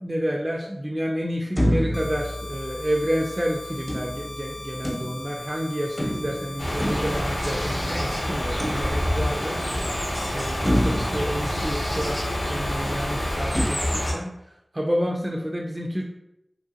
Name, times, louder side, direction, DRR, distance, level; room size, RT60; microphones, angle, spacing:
voice 1, 0.0-9.6 10.3-16.0, equal, 25° right, -2 dB, 0.3 m, -29 dB
sound 1, 1.6-3.2 3.9-5.5 6.0-7.9 8.6-9.4 9.9-10.0 10.6-12.3 13.5-13.6, equal, 15° left, 1.0 m, -28 dB
sound 2, 1.9-13.4, left 2 dB, 40° left, 0.7 m, -40 dB
sound 3, 6.6-14.1, equal, 75° left, 0.9 m, -27 dB
3.0 x 2.5 x 2.7 m, 0.83 s
wide cardioid pair, 60°, 0 cm